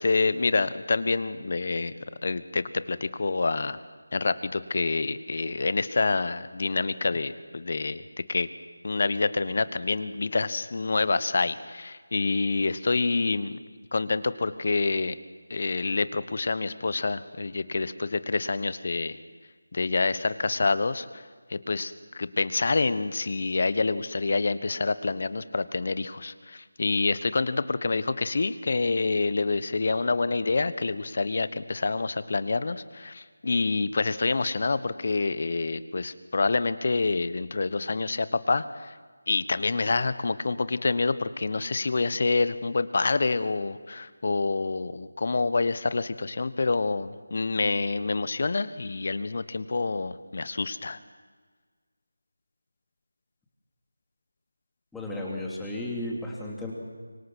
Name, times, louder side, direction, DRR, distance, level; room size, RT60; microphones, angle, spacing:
voice 1, 0.0-1.9 2.2-3.8 4.1-8.0 8.3-8.5 8.8-13.6 13.9-15.1 15.5-19.2 19.7-39.0 39.3-51.0, left 3 dB, 50° left, 14 dB, 1.2 m, -27 dB
voice 2, 54.9-56.7, left 1 dB, 5° left, -4 dB, 2.9 m, -34 dB
26.0 x 24.5 x 6.3 m, 1.5 s
figure-of-eight pair, 165°, 0 cm